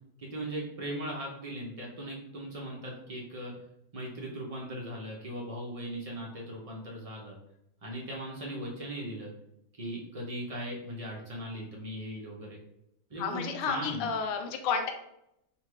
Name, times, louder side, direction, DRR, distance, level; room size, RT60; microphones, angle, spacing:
voice 1, 0.2-3.5 3.9-7.4 7.8-9.3 9.8-12.6 13.1-14.1, right 1 dB, 70° right, -2 dB, 0.3 m, -38 dB
voice 2, 13.2-14.9, left 6 dB, 65° left, 4 dB, 1.0 m, -31 dB
4.1 x 2.3 x 4.6 m, 0.79 s
omnidirectional pair, 1.8 m